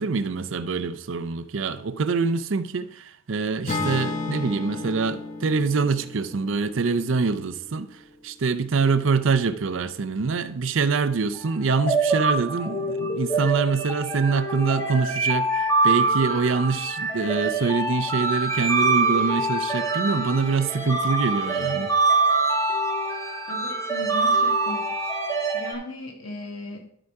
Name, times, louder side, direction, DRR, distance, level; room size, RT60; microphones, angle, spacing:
voice 1, 0.0-21.9, right 4 dB, 70° right, 0.6 m, -25 dB
Acoustic guitar / Strum, 3.7-7.9, left 3 dB, 35° left, 1.0 m, -33 dB
sound 1, 11.3-25.7, right 3 dB, 15° left, 1.4 m, -24 dB
voice 2, 23.5-25.0 25.5-26.9, left 2 dB, 90° left, 1.4 m, -37 dB
12.5 x 4.9 x 4.6 m
head